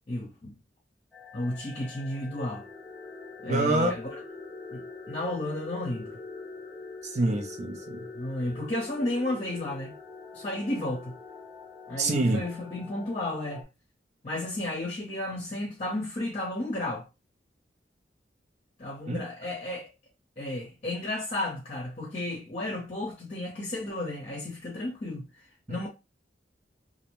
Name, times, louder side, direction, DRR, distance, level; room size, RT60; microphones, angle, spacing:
voice 1, 0.1-0.5 1.3-2.7 3.4-4.0 4.7-6.1 8.1-9.9 10.3-11.1 11.9-13.6 14.2-17.1 18.8-19.9 20.4-25.3 25.7-25.9, left 1 dB, 35° left, 0.7 m, -33 dB
sound 1, 1.1-13.6, left 3 dB, ahead, 0.7 m, -44 dB
voice 2, 3.5-3.9 7.0-8.1 12.0-12.4 19.1-19.2 25.7-25.9, right 2 dB, 40° right, 0.4 m, -26 dB
2.5 x 2.0 x 3.0 m
head